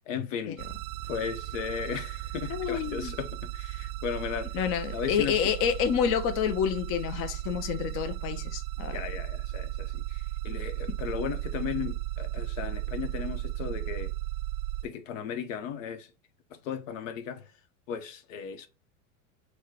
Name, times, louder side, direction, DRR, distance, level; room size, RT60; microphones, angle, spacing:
voice 1, 0.1-0.6 1.0-4.6 4.9-5.4 8.9-14.1 14.8-16.1 16.6-17.5 17.9-18.7, left 7 dB, 70° left, 0.9 m, -36 dB
sound 1, 0.6-14.8, right 15 dB, 85° right, 0.5 m, -35 dB
voice 2, 2.5-3.1 4.5-9.0, left 8 dB, 35° left, 0.4 m, -28 dB
4.5 x 2.2 x 4.6 m
hypercardioid pair, 110°, 41 cm